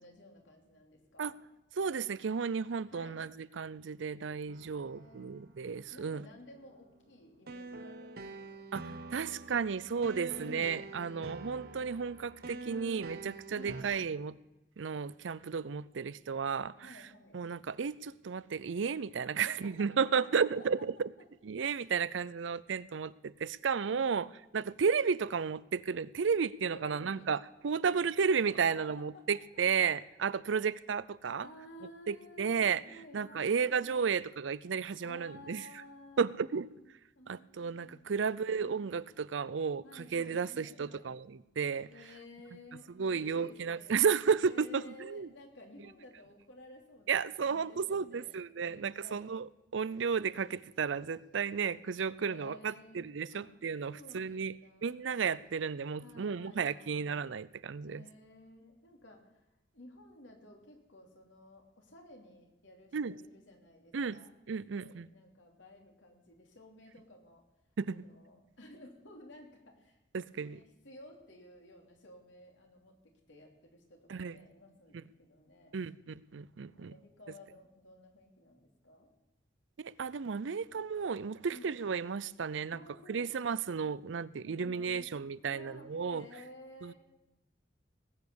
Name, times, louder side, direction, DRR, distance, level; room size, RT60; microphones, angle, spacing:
voice 1, 0.0-1.4 2.9-3.2 4.6-8.6 9.9-11.4 13.5-13.8 16.8-17.4 19.4-20.5 23.9-24.3 26.6-27.3 27.8-28.0 28.4-29.3 31.4-34.1 35.0-38.3 38.6-38.8 39.8-41.1 41.9-44.0 44.5-49.3 52.2-53.0 53.3-53.5 53.9-55.0 56.0-57.0 57.8-59.4 59.7-64.3 64.6-67.4 67.9-70.0 70.4-75.8 76.7-79.1 81.5-81.7 82.7-83.6 84.4-85.1 85.4-86.9, left 1 dB, 80° left, 2 dB, 3.2 m, -55 dB
voice 2, 1.8-6.2 8.7-8.8 9.1-14.4 14.8-16.9 17.3-21.1 21.4-24.3 24.5-31.5 32.1-32.8 33.1-35.6 36.2-36.7 37.3-41.9 43.0-45.3 47.1-54.5 54.8-58.1 62.9-63.1 63.9-64.2 64.5-65.1 67.8-68.0 70.1-70.6 74.1-74.3 74.9-75.0 75.7-76.9 79.8-82.8 83.1-86.3 86.8-86.9, right 6 dB, 80° right, 18 dB, 0.5 m, -33 dB
sound 1, 4.5-13.8, right 2 dB, 55° right, 1.1 m, -47 dB
19.0 x 8.5 x 7.0 m, 0.98 s
head